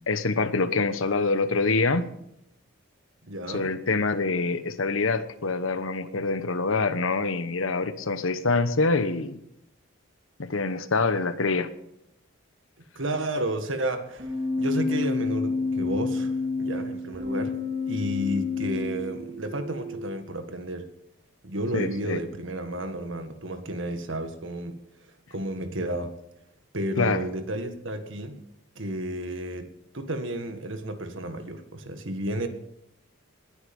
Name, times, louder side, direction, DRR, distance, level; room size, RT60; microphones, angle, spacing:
voice 1, 0.1-2.1 3.5-9.4 10.4-11.7 21.7-22.2 27.0-27.2, left 3 dB, 80° left, 12 dB, 1.1 m, -25 dB
voice 2, 3.2-3.7 13.0-17.5 17.9-20.9 21.4-24.8 25.3-26.2 26.7-28.4 28.8-29.7 29.9-32.5, right 1 dB, 70° right, 8 dB, 1.7 m, -32 dB
Keyboard (musical), 14.2-20.1, left 3 dB, 50° right, 3.7 m, -29 dB
19.5 x 9.7 x 5.4 m, 0.80 s
head